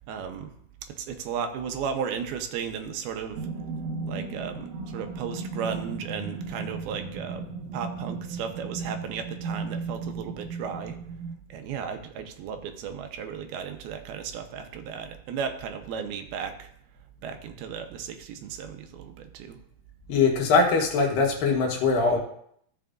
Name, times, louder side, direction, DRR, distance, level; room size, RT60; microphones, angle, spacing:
voice 1, 0.1-0.6 0.8-3.5 4.1-7.5 7.7-11.0 11.5-16.7 17.2-19.6, right 7 dB, 85° right, 6 dB, 2.7 m, -35 dB
sound 1, 3.3-11.3, right 4 dB, 50° right, 2.7 m, -35 dB
voice 2, 20.1-22.2, left 4 dB, 70° left, 1 dB, 2.8 m, -22 dB
14.5 x 6.8 x 2.5 m, 0.68 s
omnidirectional pair, 4.4 m